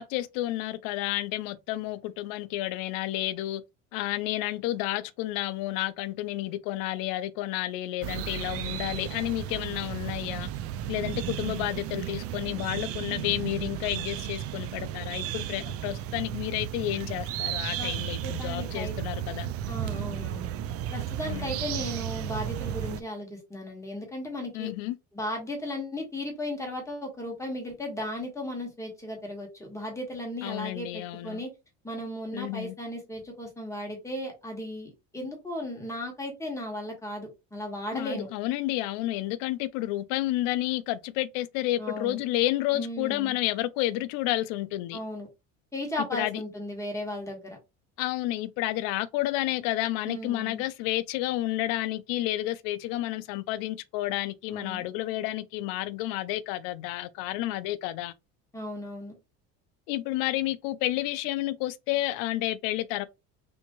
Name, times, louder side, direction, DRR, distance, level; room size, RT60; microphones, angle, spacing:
voice 1, 0.0-3.6 3.9-10.5 10.9-19.5 21.2-21.6 24.5-25.0 30.4-31.4 32.3-32.7 37.9-45.0 46.1-46.4 48.0-58.1 59.9-63.1, left 15 dB, 75° left, 0.5 m, -30 dB
sound 1, 8.0-23.0, right 11 dB, 45° right, 0.4 m, -34 dB
voice 2, 18.2-18.9 19.7-20.5 20.9-24.7 25.1-31.5 31.8-38.3 41.8-42.2 42.7-43.4 44.9-45.3 45.7-47.6 50.0-50.6 54.5-54.9 58.5-59.2, left 1 dB, 10° left, 1.4 m, -36 dB
3.5 x 2.7 x 2.9 m
cardioid pair, 130°, 33 cm